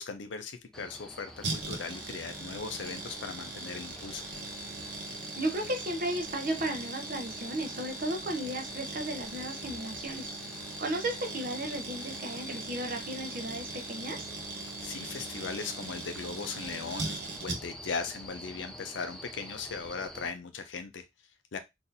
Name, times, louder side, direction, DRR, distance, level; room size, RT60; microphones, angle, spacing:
voice 1, 0.0-4.3 14.8-17.1 17.4-21.1 21.5-21.6, left 5 dB, 90° left, 7 dB, 0.5 m, -38 dB
sound 1, 0.7-20.3, equal, 5° left, 0.4 m, -45 dB
sound 2, 1.4-17.9 18.2-18.3, right 3 dB, 65° right, 0.9 m, -41 dB
voice 2, 5.4-10.3 10.8-14.3, right 1 dB, 45° right, 4 dB, 0.6 m, -34 dB
4.0 x 2.6 x 2.6 m, 0.21 s
head